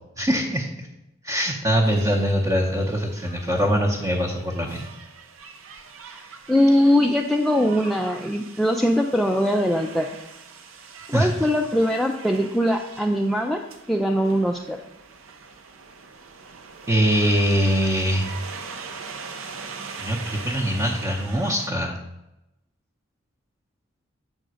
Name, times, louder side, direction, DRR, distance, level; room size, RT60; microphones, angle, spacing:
voice 1, 0.2-0.9 1.2-4.9 11.1-11.3 16.9-18.3 20.0-22.0, equal, 15° right, -1 dB, 0.8 m, -23 dB
sound 1, 1.8-21.7, right 5 dB, 70° right, 0.7 m, -41 dB
voice 2, 6.5-10.1 11.1-13.6 13.9-14.8, equal, ahead, 1 dB, 0.3 m, -21 dB
7.6 x 3.7 x 6.3 m, 0.92 s
head